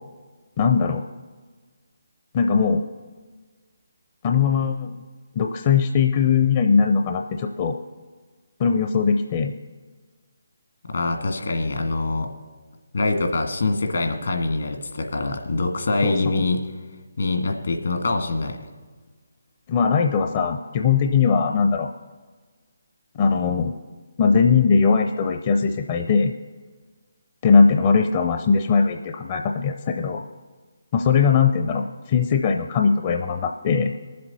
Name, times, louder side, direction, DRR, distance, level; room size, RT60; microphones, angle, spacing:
voice 1, 0.6-1.0 2.3-2.8 4.2-4.9 5.4-7.8 8.6-9.6 16.0-16.4 19.7-21.9 23.2-23.7 24.2-26.3 27.4-30.2 30.9-33.9, left 5 dB, 30° left, 5 dB, 0.5 m, -20 dB
voice 2, 10.9-12.3 12.9-16.6 17.2-18.6, left 2 dB, 70° left, 4 dB, 1.7 m, -24 dB
22.5 x 7.6 x 4.1 m, 1.4 s
figure-of-eight pair, 155°, 0 cm